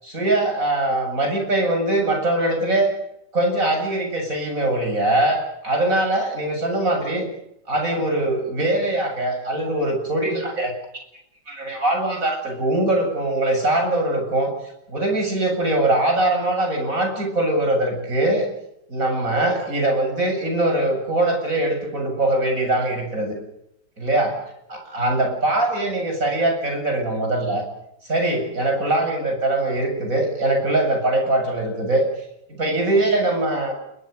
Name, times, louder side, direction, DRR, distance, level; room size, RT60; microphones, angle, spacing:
voice 1, 0.0-2.9 3.3-7.3 7.7-10.7 11.5-14.5 14.9-18.5 18.9-23.4 24.0-24.3 24.7-27.6 28.0-32.1 32.5-33.9, right 1 dB, 50° right, 3 dB, 7.9 m, -22 dB
28.5 x 23.0 x 6.7 m, 0.80 s
omnidirectional pair, 1.8 m